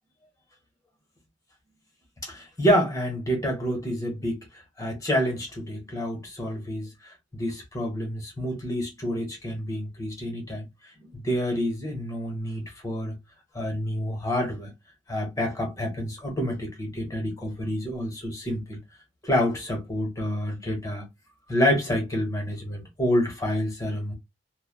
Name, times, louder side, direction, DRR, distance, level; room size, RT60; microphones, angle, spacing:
voice 1, 2.2-4.4 4.8-6.9 7.3-10.7 11.1-13.2 13.5-14.7 15.1-18.8 19.2-21.1 21.5-24.1, equal, 20° left, 1.1 m, -28 dB
3.1 x 2.2 x 2.2 m
head